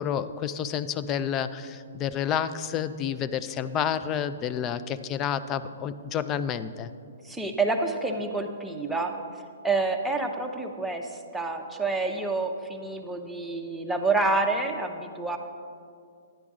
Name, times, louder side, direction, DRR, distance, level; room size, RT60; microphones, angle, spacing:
voice 1, 0.0-6.9, left 8 dB, 25° left, 13 dB, 0.3 m, -29 dB
voice 2, 7.2-9.1 9.6-15.4, right 3 dB, 5° right, 1 dB, 0.7 m, -28 dB
10.0 x 10.0 x 3.6 m, 2.3 s
hypercardioid pair, 145°, 0 cm